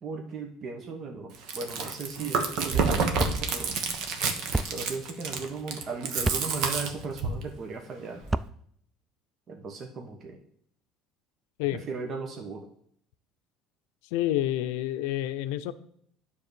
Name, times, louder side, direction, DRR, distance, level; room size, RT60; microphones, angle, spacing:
voice 1, 0.0-3.8 4.7-8.2 9.5-10.4 11.7-12.7, right 4 dB, 45° right, 2 dB, 1.2 m, -37 dB
Chewing mastication, 1.3-7.4, right 5 dB, 65° right, 1.2 m, -29 dB
sound 1, 3.2-3.4 4.5-4.7 6.2-6.4 8.2-8.5, right 2 dB, 10° right, 0.4 m, -28 dB
voice 2, 14.1-15.7, left 13 dB, 80° left, 13 dB, 0.5 m, -28 dB
10.0 x 3.6 x 6.8 m, 0.65 s
supercardioid pair, 85°, 0 cm